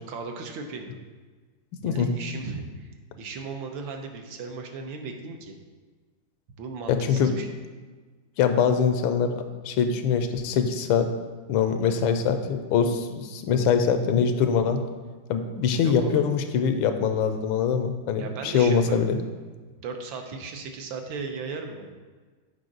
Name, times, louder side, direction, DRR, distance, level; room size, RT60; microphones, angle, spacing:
voice 1, 0.1-1.0 1.8-2.9 3.2-5.5 6.6-7.5 11.8-11.9 15.8-16.2 18.2-19.0 19.8-21.9, right 4 dB, 75° right, 4 dB, 1.5 m, -36 dB
voice 2, 1.8-2.2 6.9-7.3 8.4-11.1 11.5-14.8 15.3-19.2, left 6 dB, 85° left, 8 dB, 1.4 m, -23 dB
7.6 x 5.2 x 3.8 m, 1.4 s
omnidirectional pair, 2.2 m